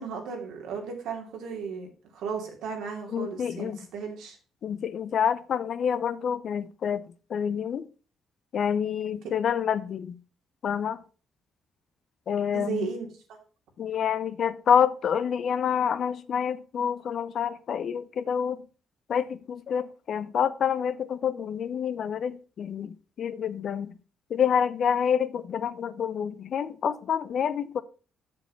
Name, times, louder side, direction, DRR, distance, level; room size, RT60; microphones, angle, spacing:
voice 1, 0.0-1.9 2.1-4.4 12.5-13.1, right 6 dB, 85° right, 2.6 m, -35 dB
voice 2, 3.1-3.8 4.6-7.0 7.3-7.9 8.5-10.2 10.6-11.0 12.3-12.9 13.8-18.6 19.1-24.0 24.3-27.8, left 8 dB, 60° left, 0.7 m, -27 dB
7.0 x 6.9 x 5.5 m
cardioid pair, 90°, 0 cm